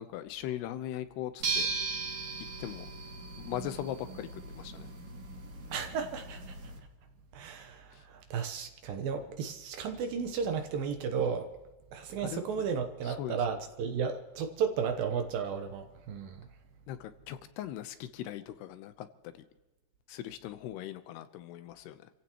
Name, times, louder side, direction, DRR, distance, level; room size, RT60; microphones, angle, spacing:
voice 1, 0.0-1.9 2.6-2.9 3.4-4.9 7.9-8.0 12.2-12.4 13.1-13.4 16.9-19.4 20.1-22.1, left 12 dB, 85° left, 3.0 m, -40 dB
sound 1, 1.4-6.8, right 4 dB, 45° right, 3.2 m, -38 dB
voice 2, 5.7-6.6 7.3-11.5 11.9-16.5, right 6 dB, 70° right, 2.6 m, -34 dB
29.5 x 15.5 x 3.1 m
omnidirectional pair, 4.7 m